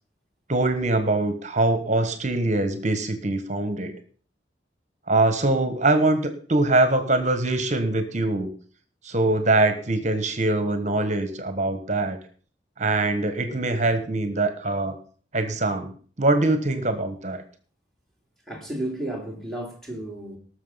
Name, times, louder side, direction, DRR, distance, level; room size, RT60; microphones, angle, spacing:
voice 1, 0.5-4.0 5.1-8.5 9.0-12.2 12.8-14.9 15.3-15.9 16.2-17.4, right 2 dB, 40° right, 1.4 m, -23 dB
voice 2, 18.5-20.4, right 1 dB, ahead, 3.3 m, -32 dB
19.0 x 6.6 x 5.7 m
head